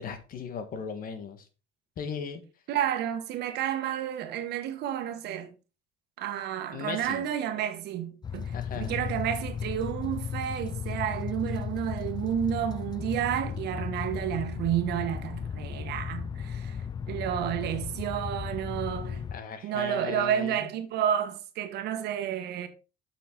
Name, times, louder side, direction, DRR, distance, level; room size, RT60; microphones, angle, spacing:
voice 1, 0.0-1.5 2.0-2.4 6.7-7.3 8.5-9.0 19.3-20.7, left 7 dB, 55° left, 1.6 m, -37 dB
voice 2, 2.7-5.5 6.2-19.2 19.6-22.7, right 10 dB, 75° right, 1.3 m, -31 dB
sound 1, 8.2-19.4, left 7 dB, 25° left, 0.3 m, -35 dB
8.2 x 6.0 x 3.8 m
cardioid pair, 110°, 17 cm